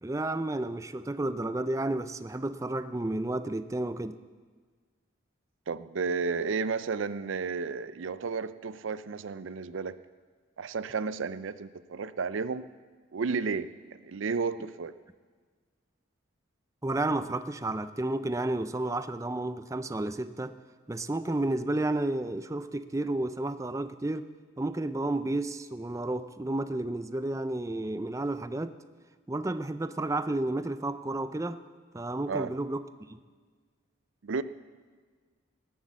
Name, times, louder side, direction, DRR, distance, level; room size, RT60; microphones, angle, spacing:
voice 1, 0.0-4.2 16.8-20.5 20.9-24.3 24.6-28.8 29.3-31.6 31.9-33.2, right 2 dB, 15° right, 12 dB, 0.4 m, -31 dB
voice 2, 5.7-10.0 10.6-12.7 13.1-14.9 32.3-32.5 34.2-34.4, right 5 dB, 75° right, 14 dB, 0.5 m, -32 dB
19.0 x 8.2 x 7.3 m, 1.5 s
head